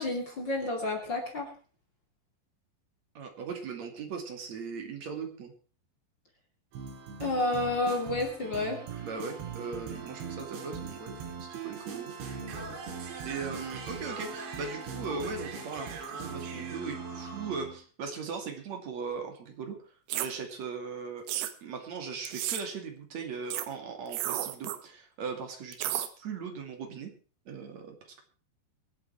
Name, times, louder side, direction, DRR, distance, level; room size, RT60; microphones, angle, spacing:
voice 1, 0.0-1.5 7.2-8.8, left 2 dB, 30° left, 2 dB, 2.5 m, -30 dB
voice 2, 3.1-5.5 9.0-12.1 12.4-19.8 20.1-21.3 21.6-27.1 27.5-28.2, right 5 dB, 45° right, 4 dB, 3.2 m, -39 dB
sound 1, 6.7-17.8, right 5 dB, 90° right, 5.4 m, -40 dB
sound 2, 20.1-20.3 21.3-21.5 22.3-22.6 23.5-23.7 24.1-24.8 25.7-26.1, right 13 dB, 70° right, 2.8 m, -32 dB
24.5 x 8.2 x 4.6 m, 0.38 s
omnidirectional pair, 5.1 m